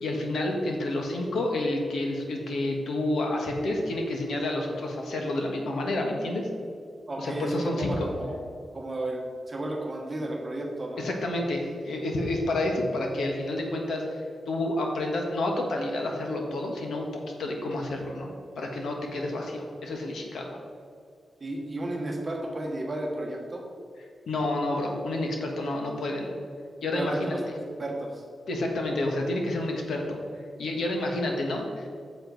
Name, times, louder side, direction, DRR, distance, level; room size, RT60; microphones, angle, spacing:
voice 1, 0.0-6.5 7.2-8.1 11.0-18.3 18.5-20.6 24.3-26.3 26.8-27.3 28.5-30.2 30.6-31.9, left 1 dB, 75° left, 1 dB, 1.5 m, -29 dB
voice 2, 7.1-8.4 8.7-11.0 21.4-23.6 26.9-28.2, right 1 dB, 25° right, 0 dB, 1.3 m, -33 dB
9.3 x 7.1 x 4.1 m, 2.3 s
wide cardioid pair, 180°, 0 cm